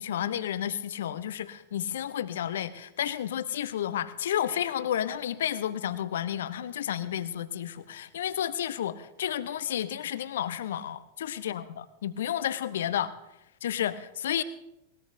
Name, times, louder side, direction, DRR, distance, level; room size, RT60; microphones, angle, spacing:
voice 1, 0.0-13.1 13.6-14.4, left 10 dB, 60° left, 14 dB, 0.8 m, -31 dB
21.5 x 19.5 x 2.7 m, 0.86 s
figure-of-eight pair, 90°, 0 cm